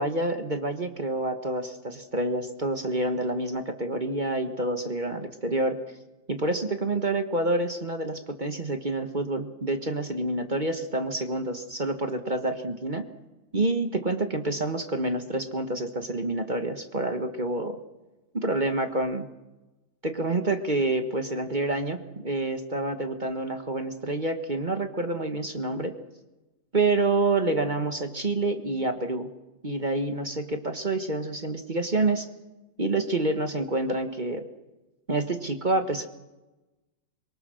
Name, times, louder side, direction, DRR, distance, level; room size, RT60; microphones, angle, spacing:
voice 1, 0.0-5.8 6.3-13.1 13.5-17.8 18.3-19.3 20.0-25.9 26.7-29.3 29.6-32.3 32.8-34.4 35.1-36.1, right 2 dB, 30° right, 7 dB, 1.3 m, -28 dB
25.0 x 23.0 x 6.4 m, 1.1 s
omnidirectional pair, 2.0 m